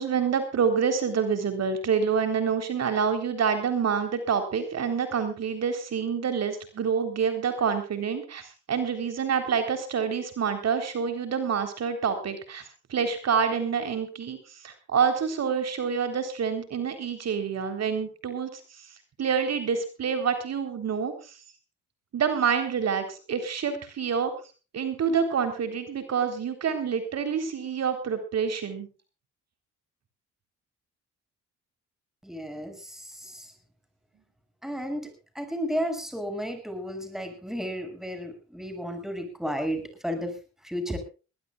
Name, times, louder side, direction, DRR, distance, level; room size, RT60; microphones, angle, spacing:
voice 1, 0.0-18.9 19.2-21.4 22.1-24.3 24.7-28.9, right 6 dB, 55° right, 8 dB, 3.8 m, -27 dB
voice 2, 32.2-33.5 34.6-41.0, equal, ahead, 7 dB, 6.5 m, -33 dB
21.5 x 19.5 x 2.4 m, 0.35 s
cardioid pair, 90°, 30 cm